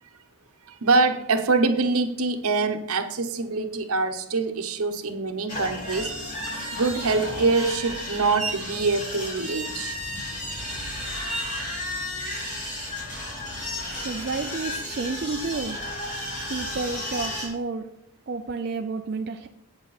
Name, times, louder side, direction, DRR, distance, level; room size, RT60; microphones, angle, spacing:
voice 1, 0.7-6.1 6.6-10.0, right 3 dB, 75° right, 7 dB, 1.0 m, -24 dB
sound 1, 5.5-17.5, left 1 dB, 35° left, 2.8 m, -33 dB
voice 2, 14.0-15.8 16.5-17.9 18.3-19.5, right 4 dB, 45° right, 4 dB, 0.5 m, -31 dB
8.8 x 8.1 x 4.1 m, 0.80 s
head